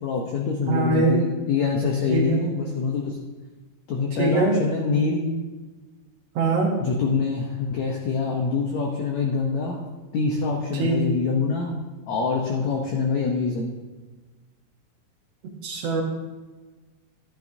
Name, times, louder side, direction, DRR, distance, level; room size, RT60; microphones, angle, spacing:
voice 1, 0.0-3.2 3.9-5.2 6.8-9.8 10.1-11.7 12.1-13.7, left 4 dB, 85° left, 0 dB, 1.5 m, -25 dB
voice 2, 0.7-1.2 2.1-2.3 4.2-4.6 6.3-6.7 10.8-11.0 15.6-16.0, right 3 dB, 80° right, 0 dB, 1.4 m, -22 dB
13.5 x 10.0 x 2.7 m, 1.3 s
omnidirectional pair, 4.5 m